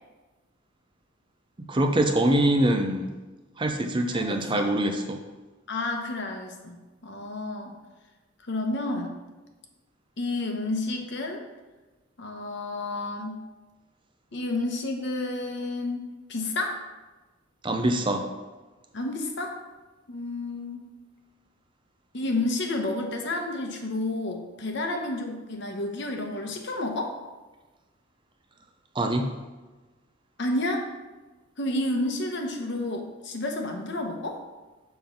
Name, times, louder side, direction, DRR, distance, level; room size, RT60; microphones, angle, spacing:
voice 1, 1.6-3.1 3.6-5.2 17.6-18.3 28.9-29.3, right 1 dB, 25° right, 5 dB, 0.5 m, -24 dB
voice 2, 4.1-4.7 5.7-7.7 8.4-9.1 10.2-11.4 12.2-13.4 14.3-16.8 18.9-19.6 20.1-20.9 22.1-27.2 30.4-30.9 31.6-34.4, left 2 dB, 55° left, 3 dB, 0.9 m, -30 dB
6.9 x 3.8 x 5.7 m, 1.2 s
head